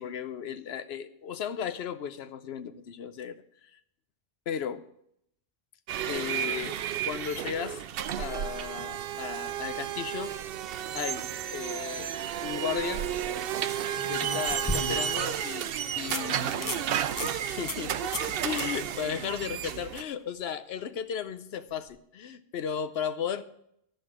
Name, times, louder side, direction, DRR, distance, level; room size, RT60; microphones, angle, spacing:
voice 1, 0.0-3.4 4.5-4.8 6.1-6.8 7.0-7.8 8.2-10.4 10.9-12.1 12.4-13.1 14.1-16.8 17.2-23.4, left 8 dB, 75° left, 12 dB, 0.9 m, -35 dB
sound 1, 5.9-20.0, right 10 dB, 65° right, 0.7 m, -32 dB
sound 2, 12.2-12.6 14.0-15.3 15.7-15.8 16.1-16.2 16.6-16.8 17.2-17.3 17.7-17.9 18.1-18.3 18.6-18.7 21.8-21.9, left 1 dB, 20° left, 0.7 m, -34 dB
13.0 x 5.2 x 7.4 m, 0.74 s
omnidirectional pair, 1.1 m